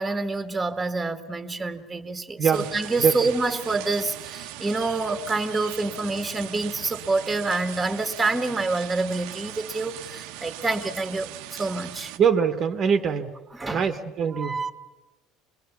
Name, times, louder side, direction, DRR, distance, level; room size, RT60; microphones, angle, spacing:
voice 1, 0.0-12.1 13.5-13.8 14.3-14.7, right 3 dB, 10° right, 8 dB, 1.4 m, -27 dB
voice 2, 2.4-2.7 3.0-3.2 12.2-13.3 13.7-14.7, right 7 dB, 35° right, 7 dB, 1.1 m, -23 dB
sound 1, 2.5-12.2, right 13 dB, 80° right, 0.9 m, -39 dB
25.5 x 21.5 x 6.9 m, 1.1 s
cardioid pair, 145°, 0 cm